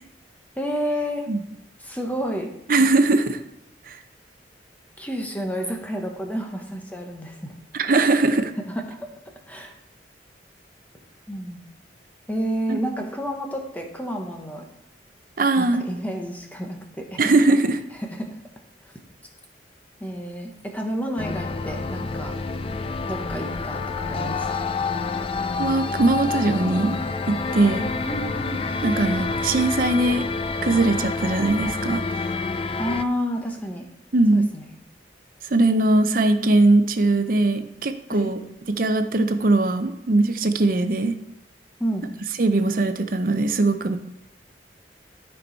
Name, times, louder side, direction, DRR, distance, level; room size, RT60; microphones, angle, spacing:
voice 1, 0.6-1.3 1.8-2.5 5.0-7.5 8.7-9.1 9.5-9.7 11.3-11.6 12.3-14.6 15.6-17.2 18.0-18.4 20.0-22.4 23.1-24.8 28.1-28.6 32.8-33.8 34.3-34.7 38.1-38.3 41.8-42.1, equal, 10° left, 2 dB, 1.0 m, -30 dB
voice 2, 2.7-3.4 3.9-4.0 7.7-8.5 12.7-12.8 15.4-15.8 17.2-17.8 25.6-27.0 27.3-27.9 28.8-30.2 30.6-32.0 34.1-34.5 35.5-38.4 38.7-41.2 42.4-44.0, right 2 dB, 50° right, 8 dB, 0.6 m, -20 dB
sound 1, 21.2-33.1, left 3 dB, 30° left, 0.4 m, -28 dB
13.5 x 4.6 x 4.1 m, 0.82 s
head